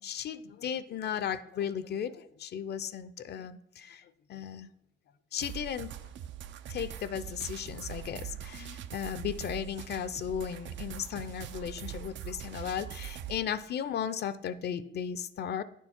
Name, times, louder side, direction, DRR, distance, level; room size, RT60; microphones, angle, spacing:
voice 1, 0.0-4.7 5.3-5.9 6.7-15.6, left 8 dB, 55° left, 15 dB, 0.5 m, -36 dB
sound 1, 5.4-13.4, right 10 dB, 70° right, 0.4 m, -42 dB
9.3 x 4.5 x 4.2 m, 0.73 s
cardioid pair, 90°, 20 cm